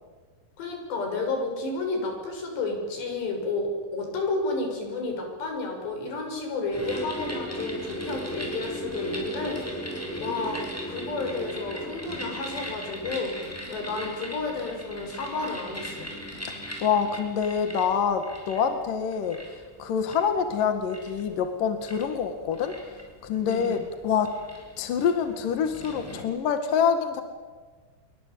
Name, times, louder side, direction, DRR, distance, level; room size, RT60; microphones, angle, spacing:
voice 1, 0.6-10.6 10.9-16.1 23.4-23.8, left 3 dB, 80° left, 3 dB, 8.6 m, -31 dB
sound 1, 6.7-26.2, equal, 5° left, 6.4 m, -38 dB
voice 2, 16.4-19.4 19.8-22.7 23.2-23.8 24.0-24.3 24.8-27.2, left 7 dB, 60° left, 7 dB, 3.1 m, -26 dB
28.0 x 24.0 x 8.5 m, 1.5 s
omnidirectional pair, 4.9 m